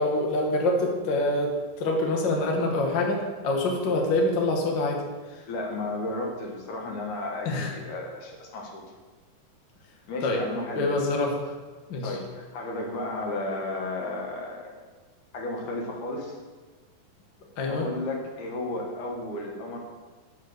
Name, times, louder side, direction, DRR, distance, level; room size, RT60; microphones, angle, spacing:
voice 1, 0.0-5.0 7.4-7.7 10.2-10.4 10.7-11.3 11.9-12.1 17.6-17.9, left 2 dB, 90° left, 1 dB, 1.0 m, -25 dB
voice 2, 5.5-8.8 10.1-11.0 12.0-14.8 15.3-16.4 17.6-19.8, left 2 dB, 65° left, 0 dB, 2.6 m, -33 dB
7.0 x 6.5 x 6.4 m, 1.3 s
omnidirectional pair, 4.1 m